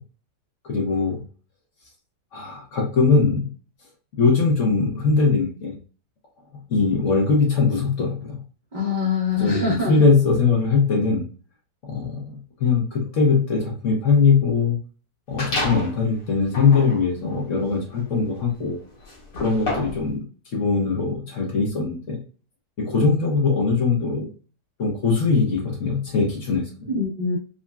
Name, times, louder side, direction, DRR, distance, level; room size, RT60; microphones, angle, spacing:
voice 1, 0.6-1.2 2.3-3.5 4.1-5.8 6.7-8.4 9.4-11.2 11.8-12.2 12.6-14.8 15.3-18.8 19.4-20.2 20.5-22.2 22.8-24.3 24.8-26.9, left 4 dB, 55° left, -1 dB, 0.9 m, -21 dB
voice 2, 8.7-10.0 26.9-27.4, left 4 dB, 50° right, -5 dB, 0.5 m, -24 dB
sound 1, 15.4-16.0 16.5-20.1, left 2 dB, 80° left, 1.7 m, -31 dB
3.8 x 2.1 x 2.2 m, 0.38 s
omnidirectional pair, 1.8 m